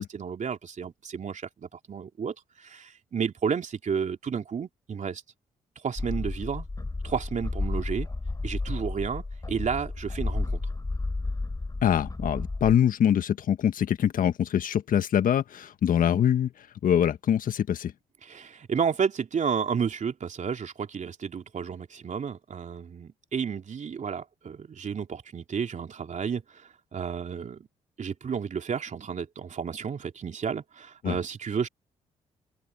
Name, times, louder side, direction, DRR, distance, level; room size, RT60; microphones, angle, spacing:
voice 1, 0.0-2.3 2.6-5.2 5.8-6.7 7.0-8.1 8.4-10.6 18.2-27.7 28.0-31.7, right 6 dB, 50° right, 3.2 m, -32 dB
sound 1, 6.0-12.8, left 3 dB, 25° left, 3.3 m, -32 dB
voice 2, 11.8-17.9 31.0-31.2, left 9 dB, 65° left, 1.5 m, -24 dB
hypercardioid pair, 50°, 16 cm